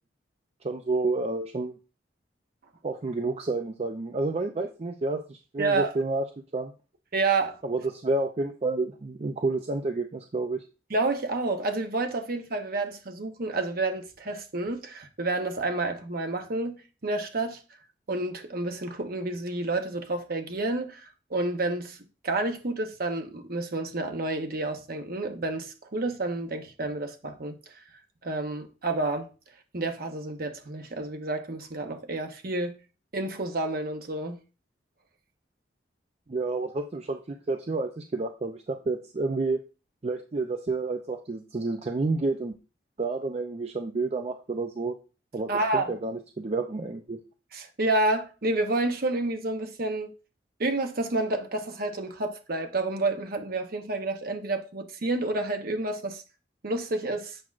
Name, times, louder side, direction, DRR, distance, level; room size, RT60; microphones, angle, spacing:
voice 1, 0.6-1.8 2.8-6.2 6.5-6.7 7.6-10.6 36.3-39.6 40.0-42.5 43.0-44.9 45.3-47.2, right 3 dB, 35° right, 0.5 m, -30 dB
voice 2, 5.6-5.9 7.1-7.6 10.9-17.6 18.1-22.0 22.2-27.6 28.2-29.3 29.7-32.7 33.1-34.4 45.5-45.9 47.5-50.1 50.6-56.2 56.6-57.4, right 2 dB, 55° right, 1.0 m, -29 dB
7.8 x 6.0 x 2.4 m
head